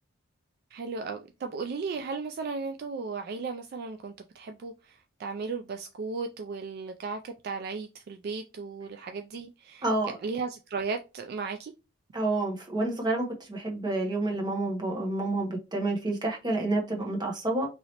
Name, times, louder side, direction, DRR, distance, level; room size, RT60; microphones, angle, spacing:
voice 1, 0.7-9.8 10.2-11.7, right 4 dB, 50° right, 0.3 m, -35 dB
voice 2, 9.8-10.2 12.1-17.7, right 2 dB, 20° right, 0.9 m, -29 dB
3.0 x 2.8 x 2.9 m
head